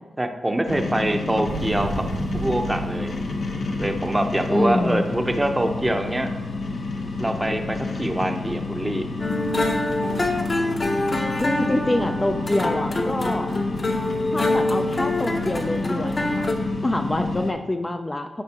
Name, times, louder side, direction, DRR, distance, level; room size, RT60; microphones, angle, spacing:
voice 1, 0.2-2.0 2.3-3.1 3.8-6.3 7.2-9.1, right 1 dB, 15° right, 6 dB, 0.7 m, -24 dB
sound 1, 0.7-17.5, left 3 dB, 70° left, 0.9 m, -29 dB
Motorcycle, 1.5-5.4, right 4 dB, 85° right, 0.5 m, -36 dB
voice 2, 4.5-5.0 11.4-13.5 14.3-16.4 16.8-18.4, left 1 dB, 20° left, 6 dB, 0.4 m, -26 dB
sound 2, 9.2-16.5, left 2 dB, 40° left, 0.9 m, -25 dB
11.5 x 4.9 x 2.9 m, 1.2 s
cardioid pair, 80°, 0 cm